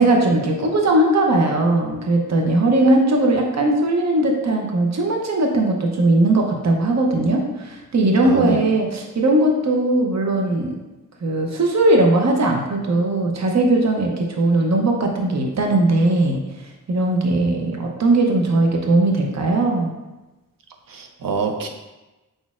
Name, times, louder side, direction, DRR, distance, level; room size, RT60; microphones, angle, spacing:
voice 1, 0.0-10.8 11.2-19.9, right 2 dB, 50° right, 1 dB, 0.7 m, -19 dB
voice 2, 8.2-8.6 20.9-21.7, right 3 dB, 90° right, 4 dB, 0.6 m, -24 dB
5.0 x 4.1 x 2.4 m, 1.1 s
wide cardioid pair, 70°, 33 cm